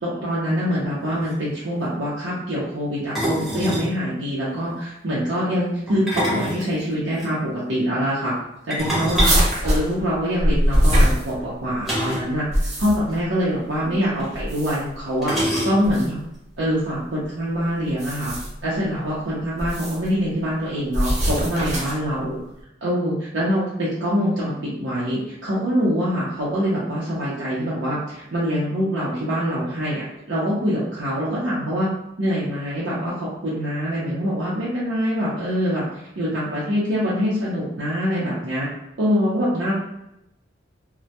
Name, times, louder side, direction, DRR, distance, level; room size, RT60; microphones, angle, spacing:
voice 1, 0.0-8.4 8.7-9.3 9.6-12.5 12.8-15.3 15.6-16.2 16.6-18.3 18.6-22.4 22.8-31.9 32.2-35.8 36.2-38.7 39.0-39.7, equal, 80° right, -8 dB, 0.6 m, -24 dB
sound 1, 0.8-0.9 1.1-1.3 3.1-3.9 5.9-7.3 8.7-10.4 11.8-12.4 12.6-12.7 13.0-13.2 14.2-14.3 15.2-16.1, equal, ahead, 0.7 m, -26 dB
sound 2, 9.1-11.8 12.3-13.2 14.3-15.0 15.8-16.1 17.9-18.6 19.6-20.1 20.9-22.1, equal, 40° right, 0.7 m, -22 dB
2.1 x 2.1 x 2.7 m, 0.84 s
head